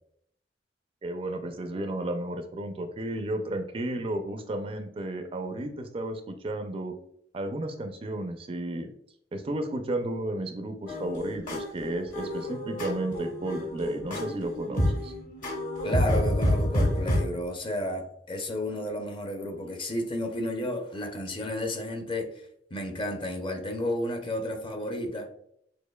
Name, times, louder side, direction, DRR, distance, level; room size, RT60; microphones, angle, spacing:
voice 1, 1.0-6.9 7.3-8.9 9.3-15.1, right 1 dB, 30° right, 0.4 m, -33 dB
sound 1, 10.9-17.2, equal, 50° left, 1.2 m, -28 dB
voice 2, 15.8-25.3, left 1 dB, 30° left, 0.6 m, -32 dB
6.5 x 2.6 x 2.2 m
head